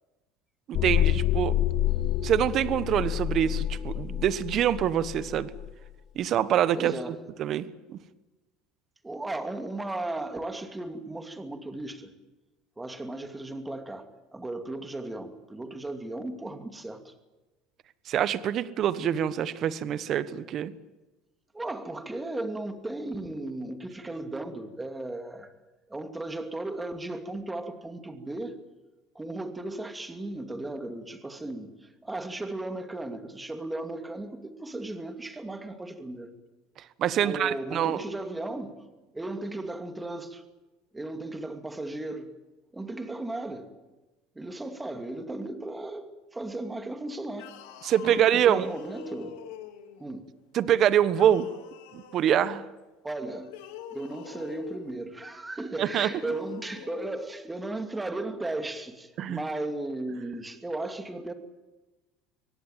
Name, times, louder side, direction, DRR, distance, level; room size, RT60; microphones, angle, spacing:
sound 1, 0.7-5.7, left 12 dB, 50° left, 0.9 m, -28 dB
voice 1, 0.7-1.5 2.2-5.5 6.1-7.7 18.1-20.7 37.0-38.0 47.8-48.7 50.5-51.5 51.9-52.6 55.8-56.1 59.2-59.4, right 10 dB, 45° right, 1.2 m, -25 dB
voice 2, 6.7-7.2 9.0-12.1 12.8-17.1 21.5-25.5 25.9-28.6 29.1-36.3 37.2-38.8 39.1-40.4 40.9-42.3 42.7-43.7 44.3-47.5 48.0-49.4 50.0-50.2 53.0-53.6 53.9-61.3, right 2 dB, 10° right, 2.5 m, -36 dB
sound 2, 47.3-50.0 51.1-52.6 53.4-54.9 55.8-57.3, left 10 dB, 80° left, 2.7 m, -45 dB
24.0 x 18.0 x 9.2 m
supercardioid pair, 115°, 0 cm